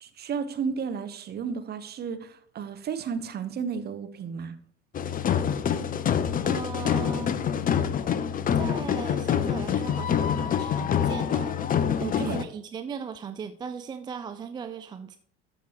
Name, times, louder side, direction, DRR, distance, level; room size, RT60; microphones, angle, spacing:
voice 1, 0.0-4.5 12.0-12.4, right 6 dB, 30° right, 10 dB, 1.0 m, -33 dB
sound 1, 4.9-12.4, left 8 dB, 25° left, 0.7 m, -26 dB
voice 2, 6.4-7.3 8.5-11.6 12.2-15.2, right 6 dB, 15° right, 10 dB, 0.3 m, -38 dB
13.5 x 6.1 x 3.0 m, 0.62 s
figure-of-eight pair, 70°, 33 cm